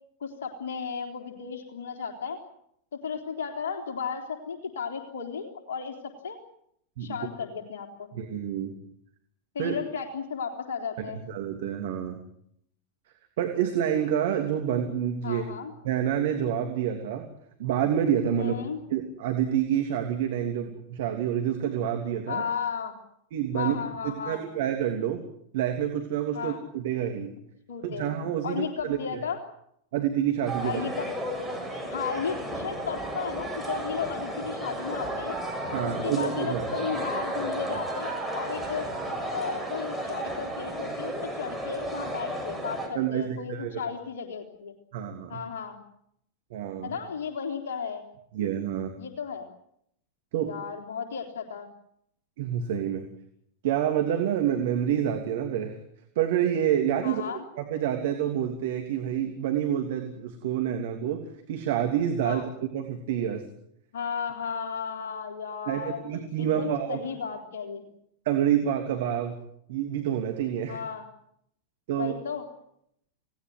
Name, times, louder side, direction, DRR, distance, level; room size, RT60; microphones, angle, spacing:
voice 1, 0.2-2.4 2.9-6.4 7.0-8.1 9.5-11.2 15.2-15.7 18.4-18.8 22.3-22.9 23.5-24.4 26.3-26.6 27.7-28.2 28.4-29.4 30.6-31.1 31.8-35.4 35.8-38.9 39.3-44.7 45.3-45.8 46.8-48.0 49.0-49.5 50.4-51.7 57.0-57.4 62.2-62.4 63.9-67.9 70.7-71.0 71.9-72.5, left 6 dB, 60° left, 4 dB, 3.6 m, -34 dB
voice 2, 8.1-8.7 9.6-9.8 11.0-12.2 13.4-15.4 15.8-17.3 17.6-18.5 18.9-22.4 23.3-23.8 24.0-25.2 25.5-27.3 27.8-29.2 29.9-30.8 35.7-36.9 37.6-37.8 42.9-43.8 44.9-45.4 46.5-46.9 48.3-48.9 50.3-50.5 52.4-53.1 53.6-55.8 56.1-57.2 57.6-61.2 61.5-63.4 65.7-67.0 68.2-69.4 69.7-70.8 71.9-72.1, right 9 dB, 55° right, 4 dB, 3.0 m, -28 dB
sound 1, 30.5-42.9, right 1 dB, ahead, 7.3 m, -33 dB
29.5 x 18.5 x 7.8 m, 0.73 s
figure-of-eight pair, 90°, 0 cm